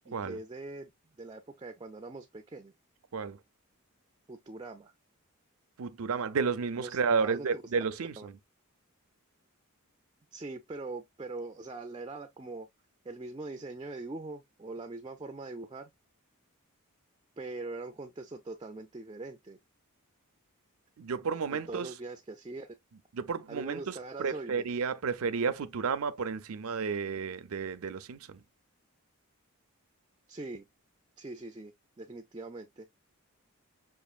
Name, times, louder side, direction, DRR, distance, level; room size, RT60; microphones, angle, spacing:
voice 1, 0.1-2.7 4.3-4.9 6.8-7.6 8.2-8.3 10.3-12.7 13.0-15.9 17.4-19.6 21.7-22.7 23.5-24.6 30.3-30.7 31.2-31.7 32.0-32.9, right 2 dB, 20° right, 0.4 m, -42 dB
voice 2, 5.8-8.4 21.0-21.9 23.1-28.4, right 5 dB, 70° right, 0.5 m, -32 dB
6.0 x 2.5 x 2.3 m
head